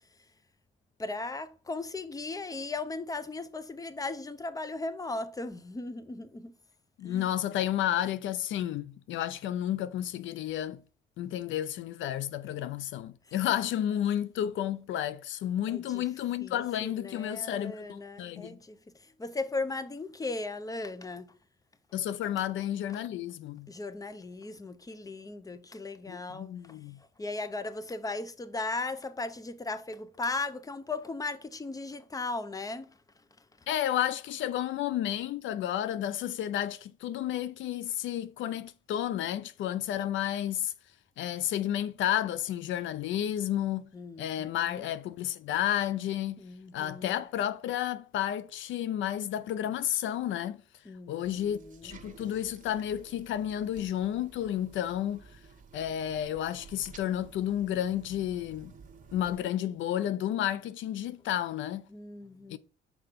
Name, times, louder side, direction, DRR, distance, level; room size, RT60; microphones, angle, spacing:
voice 1, 1.0-6.5 7.0-7.2 15.7-16.0 16.4-21.3 23.7-26.8 27.2-32.9 43.9-44.9 46.4-47.2 50.8-51.9 61.9-62.6, left 3 dB, 15° left, 0.7 m, -37 dB
voice 2, 7.0-10.8 11.2-18.6 21.9-23.7 26.1-27.0 33.7-40.7 41.2-43.9 44.2-46.4 46.7-50.6 51.1-55.4 55.7-58.7 59.1-61.9 62.5-62.6, left 11 dB, 75° left, 0.4 m, -31 dB
sound 1, 51.2-59.4, right 5 dB, 40° right, 1.1 m, -53 dB
5.8 x 4.7 x 5.1 m
cardioid pair, 90°, 20 cm